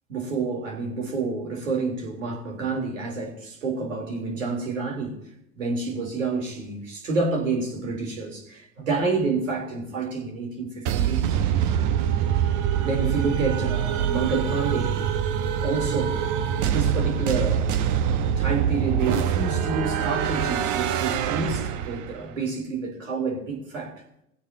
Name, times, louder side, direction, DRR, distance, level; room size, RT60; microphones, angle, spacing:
voice 1, 0.1-5.2 5.6-11.4 12.8-15.0 15.6-16.2 16.6-17.7 18.4-24.0, right 3 dB, 80° right, 0 dB, 3.8 m, -28 dB
sound 1, 10.8-22.2, right 9 dB, 50° right, 1.1 m, -24 dB
19.0 x 16.0 x 2.9 m, 0.79 s
figure-of-eight pair, 75°, 38 cm